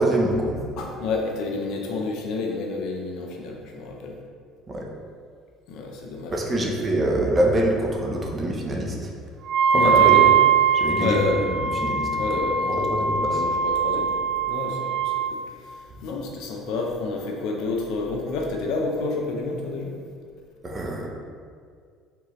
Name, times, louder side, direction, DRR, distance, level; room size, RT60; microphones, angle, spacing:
voice 1, 0.0-0.6 4.7-4.9 6.3-9.1 9.7-10.2 10.7-11.2 11.5-12.3 12.7-13.4 20.6-21.1, right 1 dB, 25° right, -1 dB, 0.8 m, -25 dB
voice 2, 0.8-4.2 5.7-6.7 9.7-10.3 11.0-11.6 12.2-19.9 20.6-20.8, left 3 dB, 70° left, 0 dB, 0.7 m, -29 dB
Wind instrument woodwind instrument, 9.5-15.3, right 7 dB, 60° right, 0.4 m, -21 dB
4.6 x 3.7 x 3.1 m, 2.1 s
supercardioid pair, 105°, 0 cm